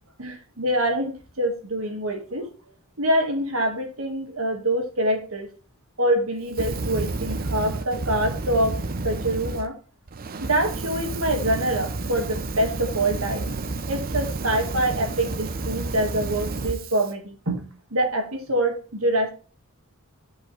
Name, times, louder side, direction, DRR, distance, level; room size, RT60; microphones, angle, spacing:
voice 1, 0.2-2.5 3.0-5.5 6.0-8.8 9.0-9.8 10.4-13.5 13.9-19.3, right 1 dB, 70° right, 4 dB, 2.1 m, -25 dB
Fire, 6.5-9.6 10.1-17.1, right 3 dB, 45° right, 0.7 m, -30 dB
10.5 x 5.4 x 3.4 m, 0.36 s
head